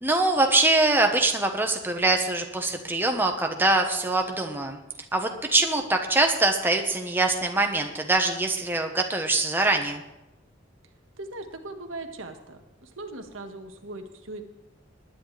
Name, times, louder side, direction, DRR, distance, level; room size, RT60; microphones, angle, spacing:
voice 1, 0.0-4.8 5.1-10.0, right 2 dB, 10° right, 3 dB, 1.1 m, -23 dB
voice 2, 11.2-14.4, right 2 dB, 90° right, 5 dB, 1.6 m, -39 dB
20.0 x 10.0 x 3.4 m, 0.96 s
head